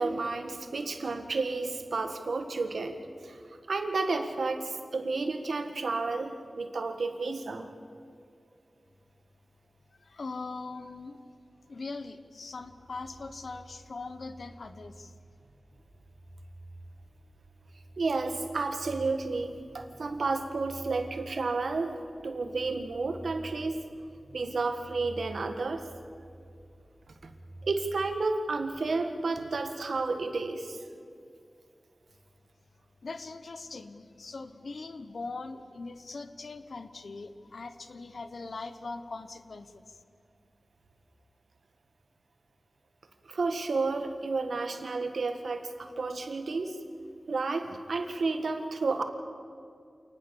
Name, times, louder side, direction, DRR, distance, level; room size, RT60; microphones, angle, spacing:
voice 1, 0.0-3.0 3.2-7.7 18.0-23.9 24.3-25.9 27.2-27.3 27.6-30.8 43.2-46.8 47.3-49.0, right 3 dB, 85° right, 7 dB, 1.7 m, -31 dB
voice 2, 10.0-11.2 11.7-15.1 33.0-40.0, left 3 dB, 75° left, 11 dB, 1.2 m, -41 dB
sound 1, 12.5-29.4, right 1 dB, 70° right, 4.0 m, -50 dB
28.0 x 19.5 x 7.1 m, 2.4 s
wide cardioid pair, 60°, 0 cm